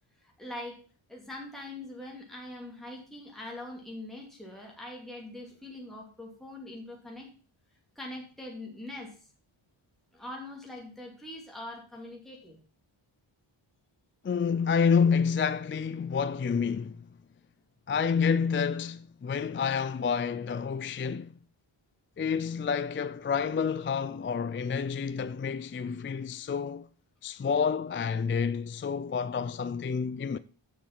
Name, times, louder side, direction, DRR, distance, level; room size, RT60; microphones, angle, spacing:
voice 1, 0.2-0.8 1.1-7.3 8.0-9.2 10.1-12.6, left 1 dB, ahead, 2.6 m, -42 dB
voice 2, 14.2-17.1 17.9-21.3 22.2-26.9 27.2-30.4, left 6 dB, 30° left, 0.3 m, -29 dB
7.1 x 7.1 x 5.9 m
wide cardioid pair, 115°, 49 cm